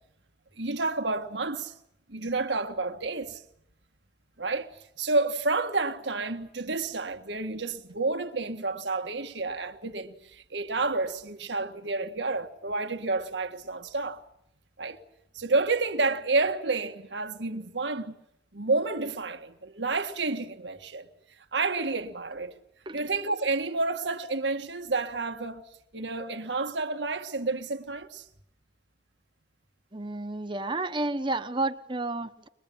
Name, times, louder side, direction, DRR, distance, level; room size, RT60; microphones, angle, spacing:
voice 1, 0.6-1.8 2.1-3.4 4.4-4.7 5.0-14.2 14.8-15.0 15.3-18.2 18.5-21.1 21.5-22.5 22.9-25.6 25.9-28.3, right 3 dB, 75° right, 1.8 m, -30 dB
voice 2, 29.9-32.5, right 2 dB, 25° right, 1.2 m, -31 dB
24.0 x 21.5 x 8.7 m
head